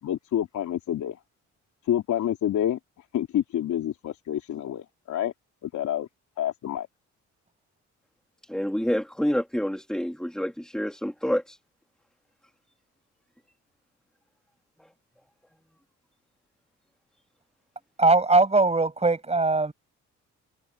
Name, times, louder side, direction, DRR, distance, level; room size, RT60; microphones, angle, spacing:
voice 1, 0.0-1.2 1.9-2.8 3.1-5.3 5.6-6.1 6.4-6.9, left 11 dB, 75° left, 3.3 m, -28 dB
voice 2, 8.4-11.6, equal, ahead, 2.2 m, -28 dB
voice 3, 18.0-19.7, right 3 dB, 20° right, 6.7 m, -20 dB
cardioid pair, 90°, 30 cm